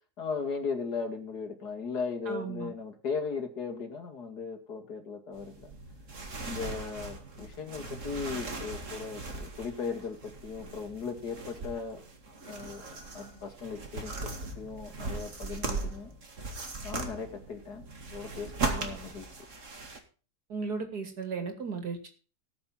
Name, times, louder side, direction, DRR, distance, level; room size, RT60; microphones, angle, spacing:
voice 1, 0.2-5.7 6.4-12.0 12.5-12.8 13.1-16.1 16.8-17.9 18.1-19.3, left 5 dB, 90° left, 5 dB, 2.8 m, -37 dB
voice 2, 2.3-2.7 20.5-22.1, right 5 dB, 90° right, 6 dB, 3.2 m, -35 dB
sound 1, 5.3-20.0, right 3 dB, 50° right, 2.5 m, -39 dB
19.0 x 6.9 x 4.3 m, 0.37 s
omnidirectional pair, 1.7 m